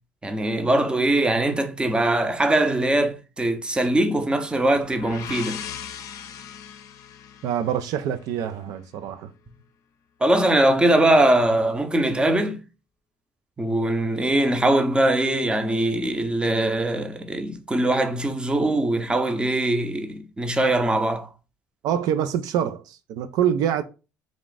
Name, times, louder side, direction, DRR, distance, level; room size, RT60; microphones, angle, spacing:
voice 1, 0.2-5.6 10.2-12.6 13.6-21.3, right 1 dB, 15° right, 0.6 m, -21 dB
sound 1, 4.6-8.4, left 8 dB, 60° left, 0.5 m, -39 dB
voice 2, 7.4-9.3 21.8-23.8, right 9 dB, 70° right, 0.4 m, -25 dB
3.5 x 2.4 x 3.8 m
supercardioid pair, 90°, 7 cm